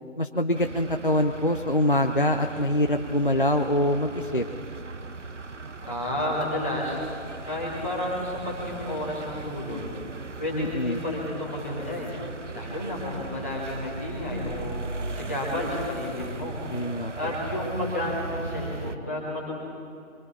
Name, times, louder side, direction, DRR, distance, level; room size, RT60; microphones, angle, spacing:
voice 1, 0.2-4.4 10.5-11.0 16.7-17.3, left 1 dB, 40° left, 5 dB, 0.6 m, -24 dB
sound 1, 0.5-19.0, right 3 dB, 60° right, 1.0 m, -38 dB
voice 2, 5.9-7.0 7.4-9.9 10.4-12.1 12.5-14.8 15.1-16.6 17.1-19.5, left 1 dB, 10° left, -7 dB, 1.8 m, -31 dB
25.0 x 24.5 x 4.2 m, 2.5 s
figure-of-eight pair, 175°, 40 cm